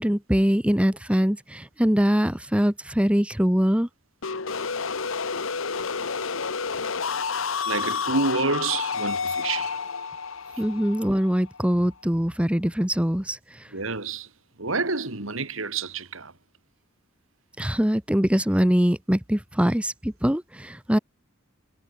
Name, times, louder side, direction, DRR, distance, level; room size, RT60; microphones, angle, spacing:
voice 1, 0.0-3.9 10.6-13.7 17.6-21.0, equal, 5° right, 1.2 m, -23 dB
sound 1, 4.2-11.9, left 5 dB, 75° left, 1.3 m, -30 dB
voice 2, 7.6-9.8 10.5-10.6 13.7-14.3 14.6-16.3, right 3 dB, 75° right, 3.3 m, -28 dB
head